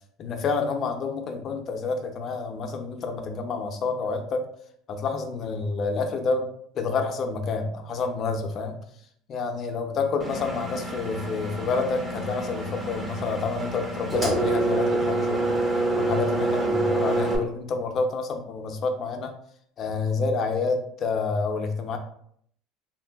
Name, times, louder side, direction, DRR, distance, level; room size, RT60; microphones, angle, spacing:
voice 1, 0.2-4.4 4.9-6.5 6.8-8.8 9.3-15.6 16.0-19.3 19.8-22.0, left 4 dB, 40° left, 5 dB, 0.4 m, -28 dB
Engine, 10.2-17.4, right 2 dB, 15° right, 0.5 m, -27 dB
3.0 x 2.6 x 2.2 m, 0.66 s
supercardioid pair, 125°, 0 cm